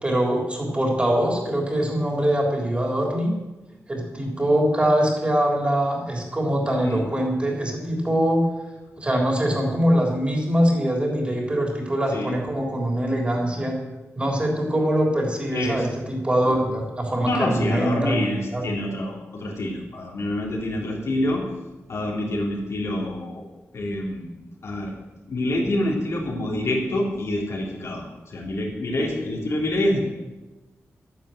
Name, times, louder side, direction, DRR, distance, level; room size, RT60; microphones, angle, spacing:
voice 1, 0.0-3.3 3.9-8.5 9.0-13.8 14.2-18.2 18.5-18.7, right 1 dB, 20° right, -1 dB, 3.7 m, -23 dB
voice 2, 15.5-15.9 16.4-16.5 17.1-21.4 21.9-23.4 23.7-24.3 24.6-24.9 25.3-30.0, left 1 dB, 70° left, -2 dB, 3.6 m, -26 dB
11.0 x 10.0 x 7.9 m, 1.1 s
wide cardioid pair, 115°, 5 cm